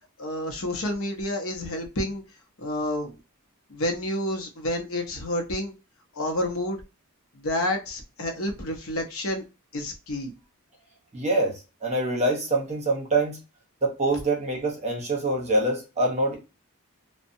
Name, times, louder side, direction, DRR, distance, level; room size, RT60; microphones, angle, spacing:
voice 1, 0.2-2.2 2.6-3.1 3.7-5.7 6.1-6.8 7.3-9.4 9.7-10.3, left 1 dB, 65° left, 0.7 m, -29 dB
voice 2, 11.1-13.4 13.8-16.4, right 2 dB, 30° right, 0.8 m, -25 dB
2.7 x 2.1 x 2.6 m
head